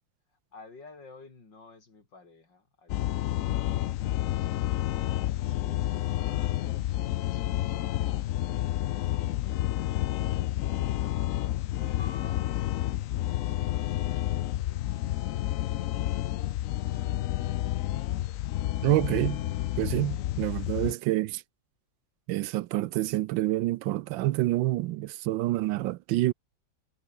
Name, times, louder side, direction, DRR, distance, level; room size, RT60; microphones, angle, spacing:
voice 1, 0.5-3.7 5.4-6.7 6.9-10.3 10.8-16.2 16.8-17.2, left 4 dB, 70° left, 4.6 m, -55 dB
sound 1, 2.9-20.9, left 13 dB, 85° left, 0.7 m, -30 dB
sound 2, 12.0-13.3, left 3 dB, 20° left, 0.9 m, -50 dB
voice 2, 18.8-19.4 19.8-21.4 22.3-26.3, right 16 dB, 90° right, 1.4 m, -27 dB
omnidirectional pair, 2.0 m